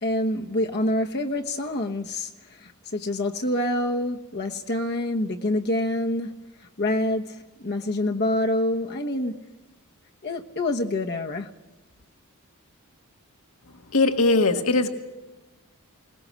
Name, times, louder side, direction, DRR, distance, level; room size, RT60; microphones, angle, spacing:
voice 1, 0.0-6.3 6.8-9.4 10.2-11.5, left 1 dB, 50° left, 2 dB, 1.1 m, -26 dB
voice 2, 13.9-14.9, left 3 dB, 75° left, 5 dB, 1.7 m, -20 dB
22.0 x 20.0 x 7.5 m, 1.1 s
head